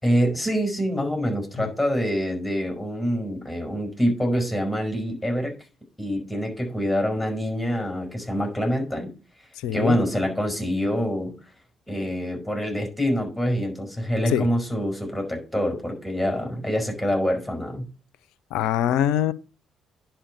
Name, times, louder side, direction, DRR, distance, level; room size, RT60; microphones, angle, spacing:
voice 1, 0.0-5.6 6.0-9.1 9.7-11.3 11.9-17.8, equal, 5° left, 4.9 m, -25 dB
voice 2, 9.6-10.0 14.3-14.5 18.5-19.3, left 10 dB, 65° left, 0.5 m, -23 dB
10.0 x 4.4 x 6.6 m
figure-of-eight pair, 45°, 0 cm